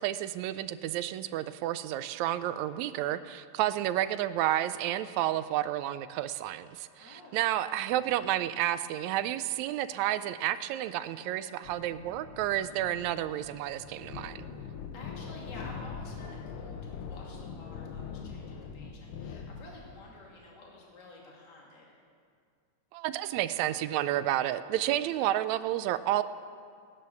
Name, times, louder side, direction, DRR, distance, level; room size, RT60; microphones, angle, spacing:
voice 1, 0.0-14.5 22.9-26.2, right 13 dB, 80° right, 13 dB, 1.8 m, -31 dB
voice 2, 7.0-7.5 14.9-21.9, left 2 dB, 35° left, -3 dB, 2.9 m, -50 dB
sound 1, 11.6-20.0, left 6 dB, 80° left, 1.2 m, -42 dB
16.5 x 10.5 x 7.0 m, 2.1 s
omnidirectional pair, 3.3 m